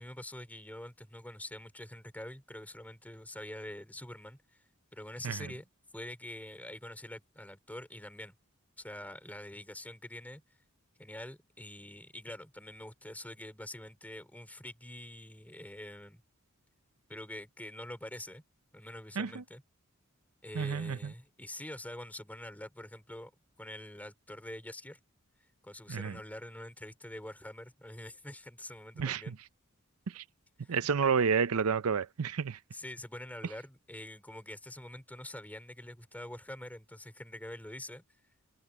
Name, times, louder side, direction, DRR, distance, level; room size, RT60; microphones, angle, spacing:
voice 1, 0.0-4.4 4.9-8.3 8.8-10.4 11.0-16.2 17.1-18.4 18.7-19.6 20.4-23.3 23.6-25.0 25.6-29.4 30.6-30.9 32.7-38.0, left 1 dB, 10° left, 3.2 m, -45 dB
voice 2, 20.5-21.1 25.9-26.2 29.0-29.3 30.1-30.2 30.7-32.6, right 6 dB, 85° right, 0.6 m, -30 dB
head